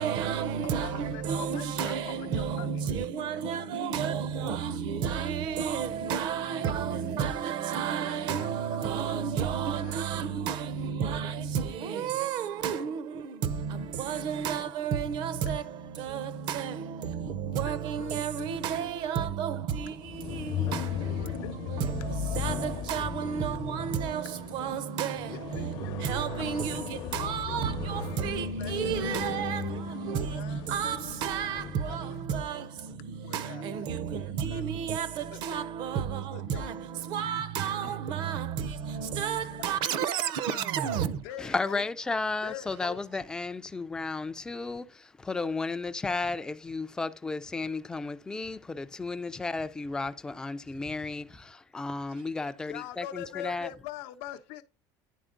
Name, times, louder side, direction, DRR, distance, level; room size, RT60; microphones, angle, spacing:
voice 1, 0.0-41.2, right 7 dB, 55° right, 0.7 m, -32 dB
voice 2, 0.6-2.7 8.0-8.5 9.0-9.2 9.8-9.9 12.7-13.0 17.7-18.9 21.2-22.4 22.9-23.0 23.7-24.0 24.3-24.6 25.3-27.6 28.0-28.3 28.6-29.3 29.8-32.2 33.2-33.6 34.5-34.6 35.3-35.6 36.3-36.7 37.8-38.0 40.0-40.2 40.5-40.6 41.2-41.8 42.4-43.0 52.6-54.6, left 13 dB, 80° left, 0.7 m, -44 dB
sound 1, 20.0-32.0, left 10 dB, 45° left, 0.7 m, -37 dB
voice 3, 41.4-53.7, left 3 dB, 10° left, 0.3 m, -33 dB
10.0 x 4.3 x 3.7 m
cardioid pair, 170°, 9 cm